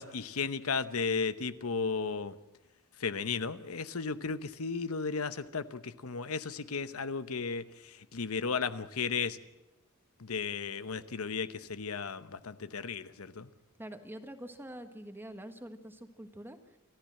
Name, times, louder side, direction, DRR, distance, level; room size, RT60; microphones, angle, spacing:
voice 1, 0.0-2.3 3.0-9.4 10.2-13.5, left 5 dB, 80° left, 13 dB, 0.9 m, -34 dB
voice 2, 13.8-16.8, right 1 dB, 10° right, 8 dB, 1.4 m, -45 dB
28.0 x 13.5 x 7.7 m, 1.0 s
head